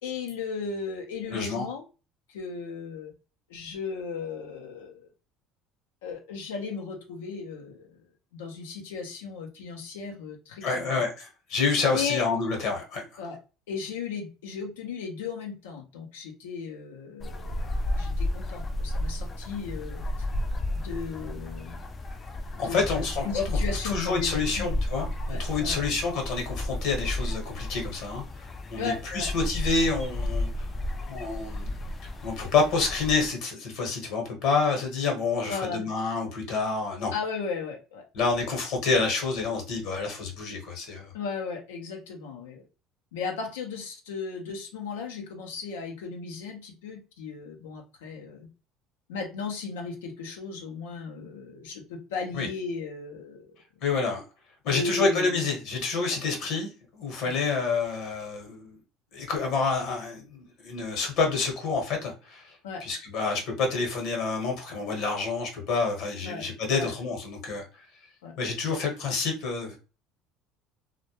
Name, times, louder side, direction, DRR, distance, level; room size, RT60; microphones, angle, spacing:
voice 1, 0.0-1.8 2.3-3.1 3.5-5.1 6.0-8.0 8.3-10.7 11.9-12.2 13.2-13.4 13.7-17.7 17.9-20.0 20.7-21.8 22.6-24.7 25.3-25.8 28.8-29.3 35.5-35.9 37.1-38.0 41.1-42.6 43.1-48.5 49.1-53.6 54.6-55.5 57.2-57.3 62.6-62.8 66.2-66.5 66.7-67.0 68.2-68.3, left 5 dB, 90° left, 0.5 m, -36 dB
voice 2, 1.3-1.7 10.6-13.2 22.6-30.7 31.1-31.7 32.2-37.1 38.1-41.1 52.3-52.5 53.8-54.2 54.6-58.8 59.1-62.5 62.8-67.9 68.4-69.8, left 4 dB, 65° left, 0.9 m, -28 dB
sound 1, 17.2-33.3, left 1 dB, 35° left, 0.4 m, -32 dB
2.1 x 2.1 x 2.8 m
supercardioid pair, 80°, 0 cm